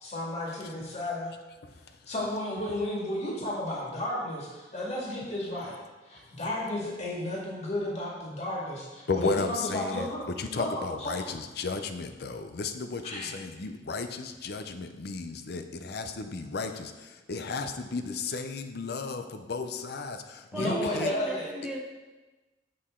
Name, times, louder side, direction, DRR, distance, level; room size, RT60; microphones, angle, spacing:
voice 1, 0.0-1.3 2.1-5.8 6.1-10.2 10.5-10.7 11.0-11.3 13.0-13.3 20.6-21.5, left 1 dB, 40° left, -4 dB, 2.0 m, -33 dB
voice 2, 9.1-10.1 10.4-21.1, left 4 dB, 65° left, 8 dB, 0.6 m, -34 dB
voice 3, 20.5-21.8, right 1 dB, 5° right, -1 dB, 1.0 m, -35 dB
7.6 x 6.5 x 3.7 m, 1.2 s
head